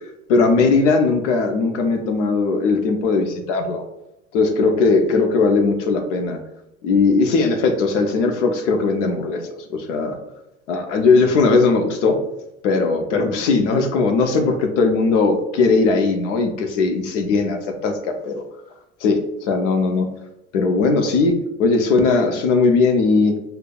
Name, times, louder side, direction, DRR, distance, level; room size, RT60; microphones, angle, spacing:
voice 1, 0.3-3.8 4.3-6.4 6.8-10.2 10.7-12.2 12.6-18.4 19.0-20.1 20.5-23.4, left 4 dB, 90° left, 5 dB, 0.7 m, -18 dB
5.0 x 2.3 x 2.3 m, 0.91 s
supercardioid pair, 90°, 35 cm